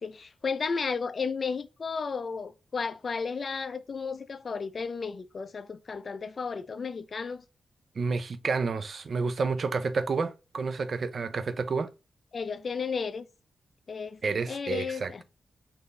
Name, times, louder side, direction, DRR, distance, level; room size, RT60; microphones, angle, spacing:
voice 1, 0.0-7.4 12.3-13.3 13.9-14.2 14.5-15.2, left 5 dB, 55° left, 0.5 m, -33 dB
voice 2, 8.0-11.9 14.2-15.2, right 4 dB, 60° right, 0.5 m, -30 dB
4.0 x 2.7 x 3.2 m
cardioid pair, 60°, 0 cm